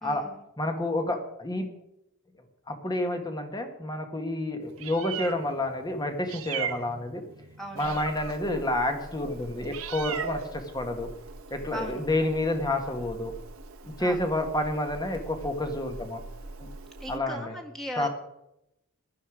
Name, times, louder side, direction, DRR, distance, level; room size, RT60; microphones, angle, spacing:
voice 1, 0.0-0.4 7.6-8.1 11.7-12.1 14.0-14.2 17.0-18.1, equal, ahead, 0 dB, 1.8 m, -38 dB
voice 2, 0.6-1.7 2.7-7.2 7.7-11.1 11.5-13.3 13.8-16.2 16.6-16.7 17.1-17.5 18.0-18.1, left 1 dB, 20° left, 6 dB, 1.7 m, -29 dB
Meow, 4.6-17.2, right 5 dB, 75° right, 1.4 m, -40 dB
15.5 x 11.5 x 4.9 m, 0.85 s
head